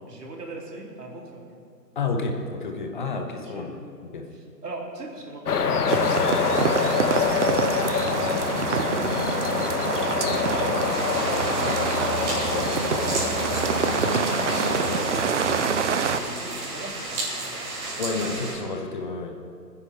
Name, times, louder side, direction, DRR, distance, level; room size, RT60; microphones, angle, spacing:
voice 1, 0.1-1.6 3.4-10.8 11.1-13.0 14.6-17.7 18.2-18.4, right 2 dB, 70° right, -1 dB, 3.9 m, -40 dB
voice 2, 1.9-4.3 14.9-15.0 18.0-19.4, left 3 dB, 30° left, 4 dB, 1.0 m, -30 dB
sound 1, 5.5-15.3, left 6 dB, 65° left, 1.2 m, -26 dB
sound 2, 5.9-16.2, right 6 dB, 45° right, 0.8 m, -26 dB
sound 3, 10.9-18.5, right 2 dB, 25° right, 5.2 m, -33 dB
22.0 x 9.9 x 5.7 m, 2.3 s
hypercardioid pair, 150°, 50 cm